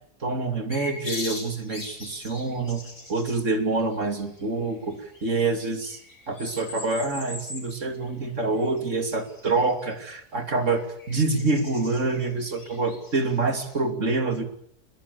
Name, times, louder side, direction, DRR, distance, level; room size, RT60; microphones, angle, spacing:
voice 1, 0.2-2.8 3.1-6.0 6.3-14.4, right 3 dB, 50° right, 6 dB, 3.3 m, -26 dB
sound 1, 0.7-3.4 3.9-4.7 4.9-5.2 5.6-7.7 8.0-9.9 10.8-13.8, left 1 dB, 70° left, 6.1 m, -40 dB
28.0 x 21.5 x 7.0 m, 0.68 s
omnidirectional pair, 1.6 m